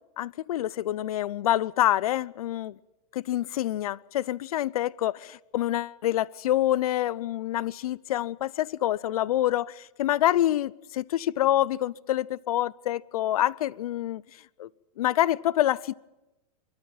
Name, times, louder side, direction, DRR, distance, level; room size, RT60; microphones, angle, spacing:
voice 1, 0.2-2.7 3.1-14.2 14.6-14.7 15.0-16.0, left 13 dB, 80° left, 0.6 m, -26 dB
26.0 x 13.0 x 9.0 m
supercardioid pair, 165°, 19 cm